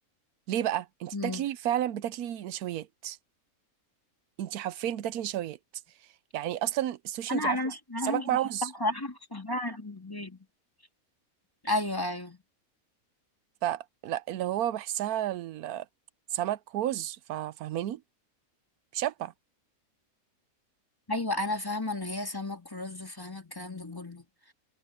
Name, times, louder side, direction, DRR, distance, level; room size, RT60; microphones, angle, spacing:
voice 1, 0.5-3.2 4.4-5.6 6.3-7.6 8.0-8.7 13.6-15.9 16.3-18.0 18.9-19.3, right 12 dB, 90° right, 1.2 m, -31 dB
voice 2, 1.1-1.4 7.3-10.4 11.6-12.4 21.1-24.5, left 1 dB, 15° left, 2.2 m, -33 dB
omnidirectional pair, 1.5 m